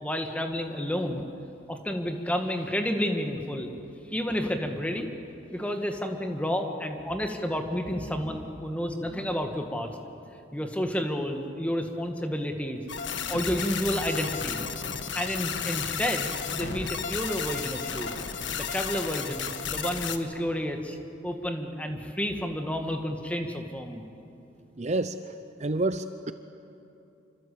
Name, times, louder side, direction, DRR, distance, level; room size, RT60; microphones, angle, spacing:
voice 1, 0.0-1.3 1.7-3.7 4.1-5.1 5.5-9.9 10.5-12.8 13.3-14.6 15.1-18.1 18.5-21.0 21.2-24.0, equal, 5° left, 4 dB, 1.9 m, -30 dB
sound 1, 12.9-20.2, left 6 dB, 65° left, 1.5 m, -33 dB
voice 2, 24.8-25.2 25.6-26.3, right 2 dB, 35° right, 10 dB, 0.6 m, -28 dB
27.0 x 25.0 x 8.6 m, 2.8 s
head